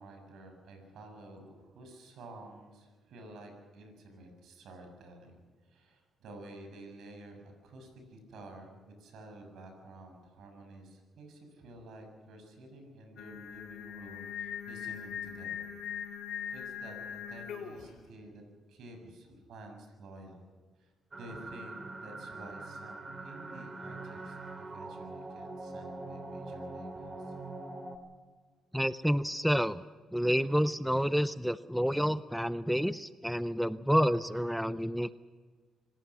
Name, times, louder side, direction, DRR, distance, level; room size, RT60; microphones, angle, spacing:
voice 1, 0.0-15.7 16.5-18.4 18.7-20.4 20.8-27.3, right 1 dB, 75° right, 4 dB, 7.0 m, -51 dB
Singing, 13.2-17.9, left 8 dB, 75° left, 3.5 m, -41 dB
sound 1, 21.1-28.0, right 2 dB, 25° right, 3.0 m, -43 dB
voice 2, 28.7-29.8 30.1-35.1, equal, ahead, 14 dB, 0.6 m, -29 dB
26.0 x 17.5 x 6.2 m, 1.4 s
cardioid pair, 90°, 0 cm